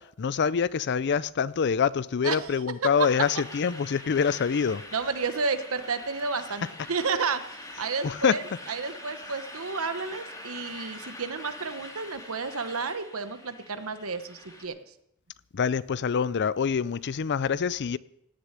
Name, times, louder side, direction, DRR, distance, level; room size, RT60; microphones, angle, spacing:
voice 1, 0.2-4.8 8.0-8.4 15.5-18.0, left 6 dB, 50° left, 0.4 m, -25 dB
voice 2, 2.2-2.8 4.9-14.8, right 4 dB, 70° right, 1.2 m, -32 dB
sound 1, 3.0-14.6, left 1 dB, 15° left, 2.6 m, -44 dB
17.5 x 6.6 x 9.8 m
head